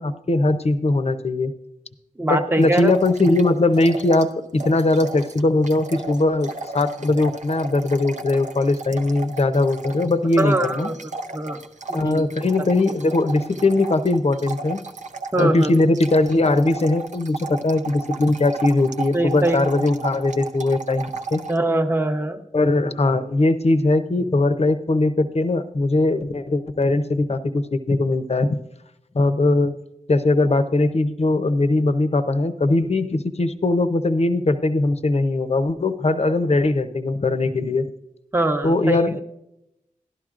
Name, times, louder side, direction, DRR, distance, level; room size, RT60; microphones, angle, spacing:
voice 1, 0.0-1.5 2.3-10.9 11.9-14.8 15.4-21.4 22.5-28.6 29.1-29.7 30.1-37.9 38.6-39.2, left 2 dB, 50° left, 10 dB, 0.7 m, -20 dB
voice 2, 2.2-2.9 10.4-10.9 11.3-11.6 11.9-12.2 15.3-15.7 19.1-19.6 21.5-22.4 38.3-39.0, right 1 dB, 15° right, 5 dB, 0.8 m, -22 dB
sound 1, 2.6-4.3 4.6-21.6, right 3 dB, 60° right, 0.6 m, -35 dB
12.0 x 12.0 x 2.5 m, 0.84 s
wide cardioid pair, 50°, 14 cm